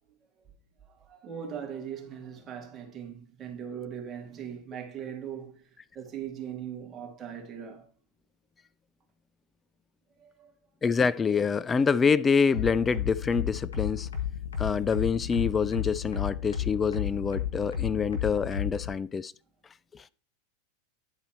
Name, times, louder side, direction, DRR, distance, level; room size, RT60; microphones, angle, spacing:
voice 1, 0.9-5.7 5.9-7.9 10.2-10.5, right 8 dB, 30° right, 2.2 m, -40 dB
voice 2, 10.8-14.1 14.6-19.3 19.9-20.0, left 5 dB, 20° left, 0.3 m, -26 dB
sound 1, 12.5-18.9, left 9 dB, 80° left, 1.5 m, -32 dB
10.5 x 4.1 x 4.4 m
hypercardioid pair, 90°, 0 cm